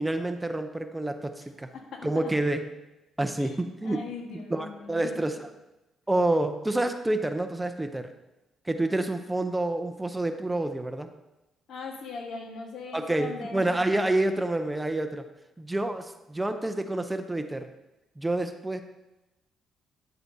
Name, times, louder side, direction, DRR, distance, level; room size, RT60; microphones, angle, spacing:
voice 1, 0.0-1.7 2.0-2.6 3.2-4.0 4.5-5.4 6.1-8.1 8.7-11.1 12.9-15.3 15.6-17.7 18.2-18.8, right 2 dB, 10° right, 7 dB, 0.6 m, -28 dB
voice 2, 1.7-2.3 3.4-3.6 3.8-5.4 11.7-14.1, left 4 dB, 75° left, 2 dB, 1.5 m, -40 dB
10.5 x 8.0 x 2.8 m, 0.98 s
cardioid pair, 90°, 0 cm